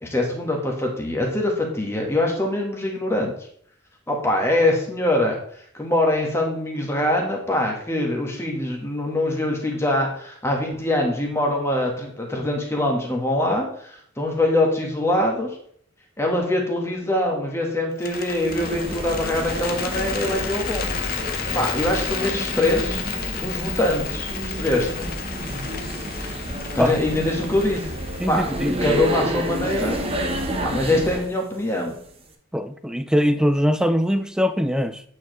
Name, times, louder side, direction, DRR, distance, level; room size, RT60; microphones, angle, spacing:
voice 1, 0.0-3.3 4.1-5.4 5.7-15.6 16.2-20.9 21.5-23.0 23.4-25.1 26.3-26.4 26.7-27.8 28.3-28.5 28.8-30.0 30.6-32.0, left 1 dB, 15° left, 0 dB, 1.2 m, -23 dB
Bird, 17.9-30.1, left 6 dB, 45° left, 0.7 m, -32 dB
sound 1, 18.4-31.3, equal, 30° right, 0.8 m, -30 dB
voice 2, 28.2-29.0 32.5-35.0, equal, 5° right, 10 dB, 0.3 m, -22 dB
8.4 x 4.7 x 3.0 m, 0.63 s
head